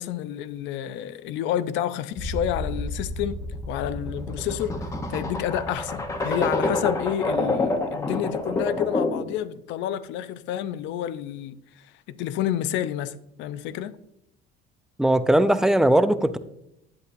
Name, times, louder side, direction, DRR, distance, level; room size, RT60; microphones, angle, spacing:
voice 1, 0.0-4.8 5.1-14.0, left 11 dB, 65° left, 0.5 m, -29 dB
sound 1, 2.2-9.3, left 2 dB, 15° left, 0.9 m, -28 dB
voice 2, 15.0-16.4, right 1 dB, 5° right, 0.3 m, -19 dB
10.5 x 8.1 x 2.6 m
cardioid pair, 130°, 21 cm